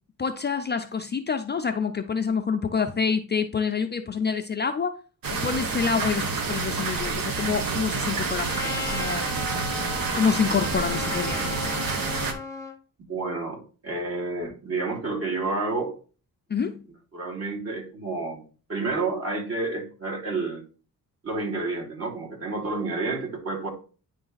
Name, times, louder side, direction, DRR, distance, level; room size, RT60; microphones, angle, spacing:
voice 1, 0.2-5.0 5.3-8.6 8.9-9.2 10.1-11.7 16.5-16.8, left 6 dB, 30° left, 0.5 m, -27 dB
sound 1, 5.2-12.3, right 4 dB, 70° right, 1.3 m, -28 dB
Trumpet, 8.5-12.8, left 3 dB, 10° left, 1.0 m, -35 dB
voice 2, 13.1-15.9 17.1-18.4 18.7-20.6 21.2-23.7, right 3 dB, 45° right, 2.9 m, -30 dB
9.5 x 3.3 x 3.9 m
cardioid pair, 125°, 36 cm